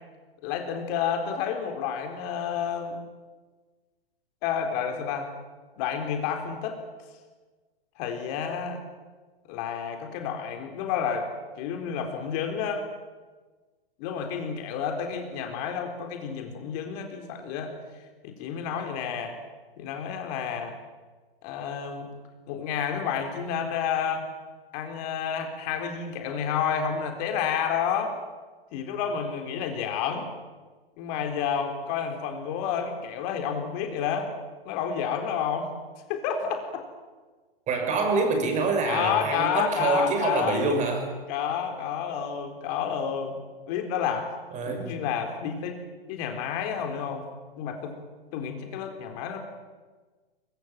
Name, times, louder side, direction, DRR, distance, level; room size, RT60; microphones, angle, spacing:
voice 1, 0.4-3.0 4.4-5.3 5.8-6.8 8.0-8.8 9.5-11.3 11.6-12.8 14.0-19.4 19.8-20.8 21.4-22.1 22.5-24.3 24.7-28.2 28.7-30.3 31.0-34.3 34.6-35.7 36.1-36.8 38.9-40.6 41.3-43.4 43.7-44.3 44.7-45.8 46.1-47.3 47.6-48.0 48.3-49.4, left 7 dB, 40° left, 4 dB, 4.0 m, -30 dB
voice 2, 37.7-41.1 44.5-45.0, right 3 dB, 25° right, 5 dB, 6.0 m, -26 dB
22.5 x 22.5 x 9.0 m, 1.3 s
hypercardioid pair, 120°, 30 cm